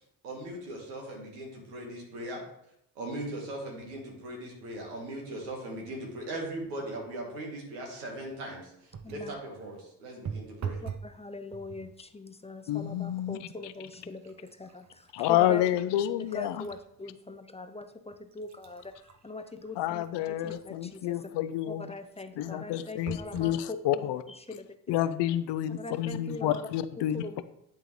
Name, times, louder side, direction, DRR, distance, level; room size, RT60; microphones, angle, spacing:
voice 1, 0.2-2.4 3.0-10.8, right 1 dB, 85° right, 0 dB, 1.7 m, -39 dB
sound 1, 8.9-9.4 10.2-11.1 11.5-12.0 12.7-12.9 13.3-16.8 17.3-17.4 18.1-20.8 23.1-23.6 24.3-24.4 24.6-24.7, right 7 dB, 35° right, 0.7 m, -43 dB
voice 2, 9.0-9.4 10.8-15.6 16.2-21.3 21.7-24.7 25.0-25.1 25.8-26.7 27.0-27.4, left 2 dB, 15° left, 8 dB, 0.5 m, -42 dB
voice 3, 12.7-13.4 15.1-16.7 19.8-21.9 22.4-24.2 24.9-27.2, left 12 dB, 60° left, 13 dB, 0.6 m, -29 dB
10.5 x 3.7 x 3.2 m, 0.75 s
hypercardioid pair, 45°, 47 cm